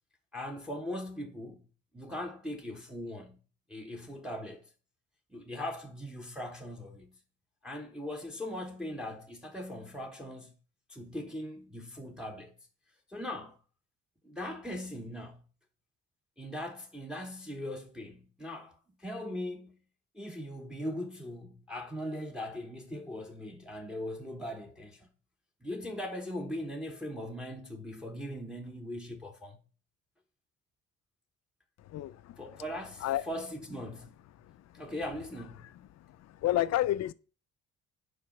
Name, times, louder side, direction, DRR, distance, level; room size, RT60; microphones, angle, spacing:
voice 1, 0.3-1.7 1.9-3.4 3.7-4.7 5.3-7.2 7.6-10.5 10.9-12.5 13.1-13.6 14.2-15.4 16.4-19.8 20.1-25.1 25.6-29.6 32.4-34.1 34.7-35.7, left 1 dB, ahead, 1.0 m, -40 dB
voice 2, 31.9-32.4 33.0-33.2 34.5-34.6 36.0-37.1, left 14 dB, 60° left, 0.5 m, -30 dB
5.0 x 4.6 x 5.9 m
cardioid pair, 90°, 30 cm